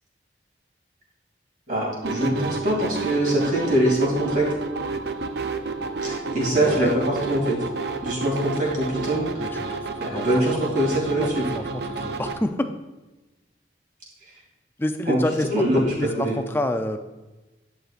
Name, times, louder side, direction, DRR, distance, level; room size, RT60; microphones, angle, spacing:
voice 1, 1.7-4.5 6.0-7.6 8.0-9.5 10.0-11.5 15.1-15.2 15.5-16.4, right 1 dB, 45° right, -3 dB, 2.7 m, -23 dB
sound 1, 2.0-12.4, right 3 dB, 65° right, 0.5 m, -30 dB
voice 2, 6.5-6.9 9.4-9.7 10.0-10.3 11.2-11.3 11.6-12.7 14.8-17.0, left 1 dB, 10° left, 6 dB, 0.4 m, -28 dB
10.5 x 6.5 x 2.5 m, 1.1 s
head